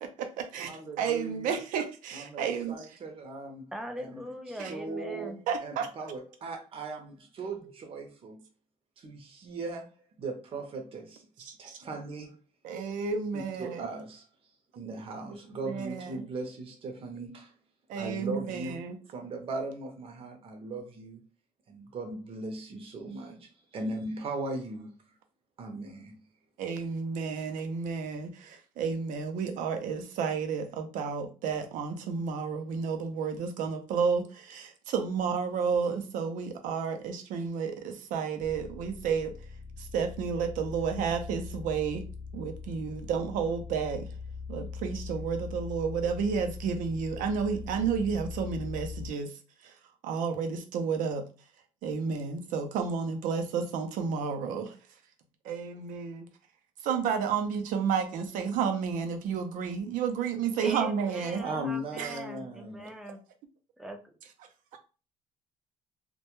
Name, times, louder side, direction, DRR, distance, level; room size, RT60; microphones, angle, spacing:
voice 1, 0.0-0.7 1.0-2.8 4.6-4.7 5.5-5.9 11.5-11.8 12.6-13.9 15.7-16.3 17.9-19.0 26.6-39.3 39.9-42.0 42.3-44.1 44.5-49.3 49.6-49.7 50.0-51.2 51.8-54.7 55.4-56.3 56.8-61.4 62.0-62.1 64.7-64.8, right 6 dB, 85° right, 0.5 m, -31 dB
voice 2, 0.7-1.6 2.1-3.7 4.0-8.4 9.0-9.9 10.2-12.4 13.6-14.3 14.8-17.5 17.9-21.2 21.7-24.9 25.6-26.2 61.4-63.2, right 2 dB, 45° right, 0.6 m, -38 dB
voice 3, 3.7-5.4 60.6-63.2 63.8-64.0, equal, 5° right, 0.4 m, -41 dB
sound 1, 38.4-49.1, left 5 dB, 40° left, 0.6 m, -41 dB
2.2 x 2.1 x 2.9 m
cardioid pair, 130°, 13 cm